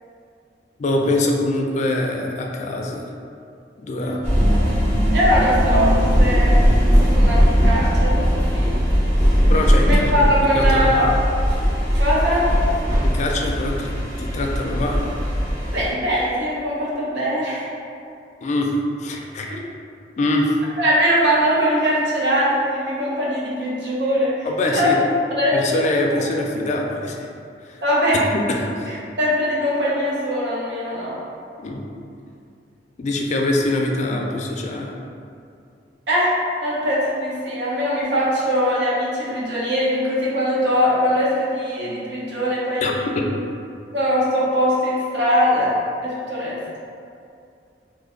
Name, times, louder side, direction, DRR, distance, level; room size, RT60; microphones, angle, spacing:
voice 1, 0.8-3.1 3.8-4.3 9.5-10.3 10.5-11.1 13.0-15.0 18.4-18.7 19.0-19.5 20.2-20.6 24.4-25.0 25.5-27.3 27.7-27.8 28.3-29.0 31.6-31.8 33.0-34.9 42.8-43.3, left 2 dB, 40° left, 0 dB, 0.3 m, -24 dB
sound 1, 4.2-15.9, equal, 45° right, 1.0 m, -18 dB
voice 2, 5.1-6.7 7.0-8.8 9.8-11.0 12.0-12.5 15.7-17.7 19.5-19.6 20.8-24.9 25.4-25.8 26.1-26.2 27.8-28.2 28.9-31.1 36.1-36.3 36.6-43.2 43.9-45.7 46.0-46.6, equal, 70° right, -6 dB, 0.8 m, -21 dB
3.2 x 2.1 x 3.7 m, 2.5 s
head